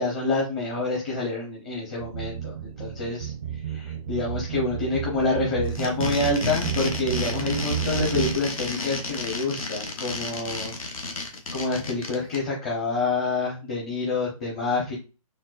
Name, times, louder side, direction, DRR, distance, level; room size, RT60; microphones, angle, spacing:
voice 1, 0.0-11.1 11.5-14.9, left 3 dB, 25° left, -3 dB, 0.8 m, -27 dB
sound 1, 2.0-8.4, right 9 dB, 30° right, 0.5 m, -31 dB
sound 2, 5.6-12.4, left 3 dB, 70° left, 0.9 m, -32 dB
4.3 x 2.0 x 2.4 m, 0.31 s
hypercardioid pair, 155°, 18 cm